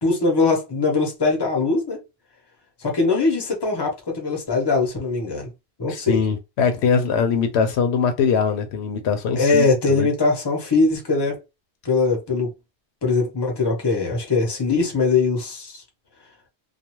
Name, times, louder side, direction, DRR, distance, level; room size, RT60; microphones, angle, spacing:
voice 1, 0.0-2.0 2.8-5.5 5.8-6.2 9.4-11.4 11.8-12.5 13.0-15.8, left 3 dB, 25° left, 0.8 m, -21 dB
voice 2, 5.9-10.1, left 6 dB, 85° left, 0.9 m, -22 dB
2.4 x 2.3 x 2.9 m
omnidirectional pair, 1.1 m